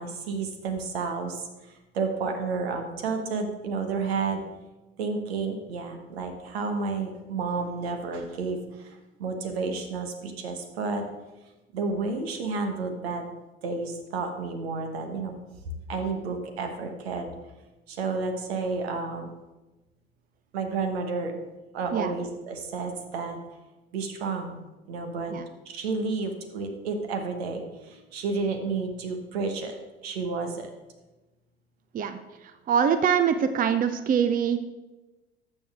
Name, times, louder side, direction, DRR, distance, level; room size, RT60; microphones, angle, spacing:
voice 1, 0.0-4.4 5.0-11.0 11.7-13.2 13.6-15.3 15.9-17.3 17.9-19.3 20.5-21.3 21.7-23.4 23.9-24.6 24.9-25.3 25.6-29.7 30.0-30.7, right 4 dB, 75° right, 5 dB, 1.4 m, -31 dB
voice 2, 31.9-34.6, right 7 dB, 25° right, 10 dB, 0.6 m, -24 dB
12.0 x 7.0 x 3.6 m, 1.1 s
figure-of-eight pair, 65°, 31 cm